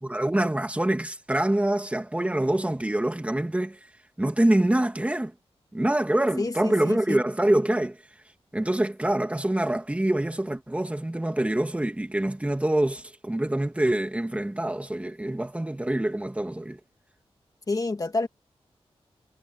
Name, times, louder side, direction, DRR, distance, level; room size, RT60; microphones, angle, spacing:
voice 1, 0.0-3.8 4.2-5.3 5.7-8.0 8.5-16.8, right 1 dB, 10° right, 2.6 m, -25 dB
voice 2, 6.4-7.2 17.7-18.3, left 3 dB, 35° left, 1.8 m, -28 dB
wide cardioid pair, 120°, 11 cm